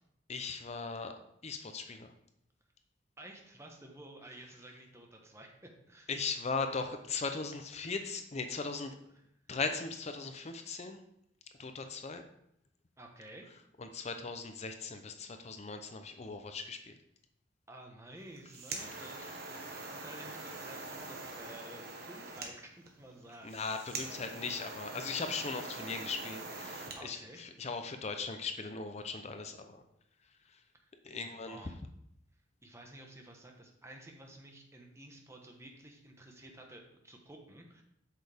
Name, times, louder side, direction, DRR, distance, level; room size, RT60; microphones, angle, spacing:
voice 1, 0.3-1.1 1.4-2.1 6.1-9.0 9.5-11.0 11.6-12.2 13.8-17.0 23.4-29.8 30.5-30.6 31.0-31.7, left 4 dB, 35° left, 7 dB, 0.6 m, -38 dB
voice 2, 3.2-5.5 5.9-6.1 10.3-10.4 13.0-13.5 17.7-24.0 24.4-24.6 27.0-27.4 28.4-28.5 31.1-31.8 32.6-37.8, right 1 dB, 15° right, 2 dB, 1.2 m, -52 dB
sound 1, 18.2-27.0, right 3 dB, 55° right, 1.3 m, -44 dB
8.2 x 6.4 x 3.5 m, 0.76 s
head